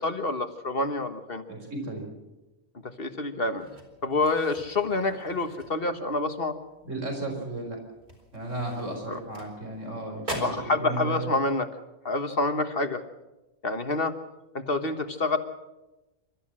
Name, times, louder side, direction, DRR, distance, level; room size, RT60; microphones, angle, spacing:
voice 1, 0.0-1.4 3.0-3.7 4.0-6.5 9.1-9.2 10.4-11.7 12.0-13.0 13.6-14.1 14.5-15.4, left 3 dB, 45° left, 8 dB, 1.5 m, -27 dB
voice 2, 1.5-2.1 6.9-7.8 8.3-11.3, right 2 dB, 65° right, 3 dB, 4.9 m, -34 dB
sound 1, 3.6-6.2 6.6-6.9 7.2-7.4 8.0-9.9 10.2-10.7, equal, 40° right, 4.5 m, -41 dB
28.0 x 13.5 x 7.5 m, 1.0 s
omnidirectional pair, 1.4 m